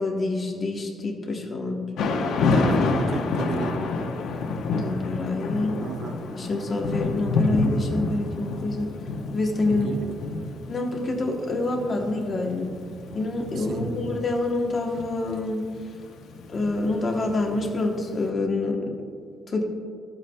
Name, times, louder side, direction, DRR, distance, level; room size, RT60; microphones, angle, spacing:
voice 1, 0.0-1.9 4.8-5.8 6.3-8.9 9.3-9.9 10.7-12.7 13.1-15.7 16.5-18.9 19.5-19.6, left 2 dB, 30° left, 1 dB, 1.0 m, -27 dB
Thunder / Rain, 2.0-18.0, left 3 dB, 80° left, 0.9 m, -28 dB
voice 2, 2.5-3.8 5.8-6.2 9.7-10.1 13.6-14.0, right 4 dB, 50° right, 6 dB, 0.6 m, -33 dB
13.5 x 8.1 x 2.3 m, 2.2 s
cardioid pair, 180°, 0 cm